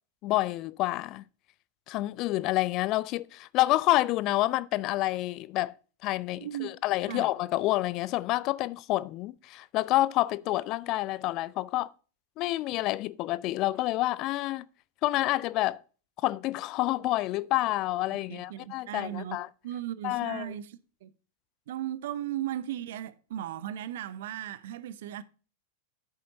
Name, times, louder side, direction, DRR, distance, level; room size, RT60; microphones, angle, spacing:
voice 1, 0.2-1.2 1.9-5.7 6.0-11.9 12.4-14.7 15.0-15.8 16.2-19.5 20.0-20.5, left 17 dB, 40° left, 0.3 m, -28 dB
voice 2, 6.4-6.7 7.1-7.3 18.3-19.4 19.6-21.1 21.7-25.2, right 12 dB, 55° right, 0.6 m, -36 dB
10.5 x 8.6 x 2.7 m
figure-of-eight pair, 90°, 0 cm